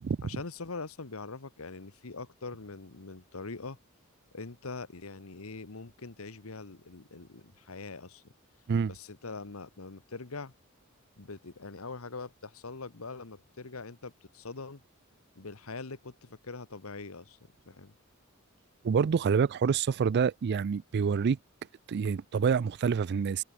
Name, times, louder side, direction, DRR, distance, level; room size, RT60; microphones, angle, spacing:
voice 1, 0.2-3.8 4.3-8.3 8.9-10.5 11.2-14.8 15.3-17.4 17.7-17.9, left 3 dB, 80° left, 1.3 m, -43 dB
voice 2, 18.8-21.4 21.9-23.4, right 6 dB, 50° right, 0.4 m, -27 dB
head